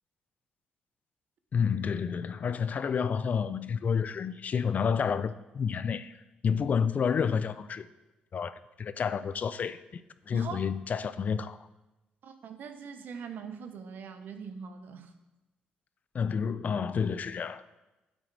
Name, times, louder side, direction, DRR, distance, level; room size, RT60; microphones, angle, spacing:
voice 1, 1.5-6.2 6.4-7.9 8.3-11.6 16.1-17.6, left 6 dB, 50° left, 0.4 m, -30 dB
voice 2, 12.2-15.1, right 6 dB, 65° right, 0.9 m, -42 dB
9.0 x 8.7 x 3.3 m
supercardioid pair, 70°, 3 cm